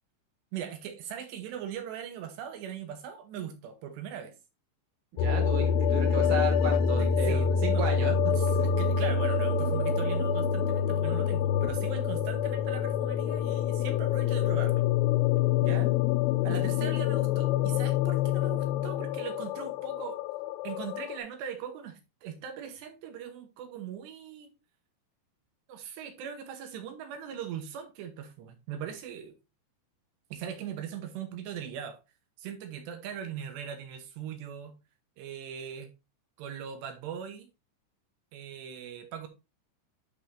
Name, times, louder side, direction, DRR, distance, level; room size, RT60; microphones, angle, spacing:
voice 1, 0.5-4.4 7.0-7.9 8.2-14.8 15.6-15.9 16.4-20.2 20.6-24.5 25.7-29.3 30.3-32.0 32.4-34.7 35.2-35.9 36.4-37.5 38.3-39.3, right 8 dB, 75° right, 2.9 m, -40 dB
voice 2, 5.1-8.9 15.6-15.9, right 4 dB, 40° right, 1.9 m, -35 dB
sound 1, 5.2-21.2, left 7 dB, 85° left, 3.0 m, -26 dB
11.5 x 5.5 x 2.7 m
omnidirectional pair, 5.4 m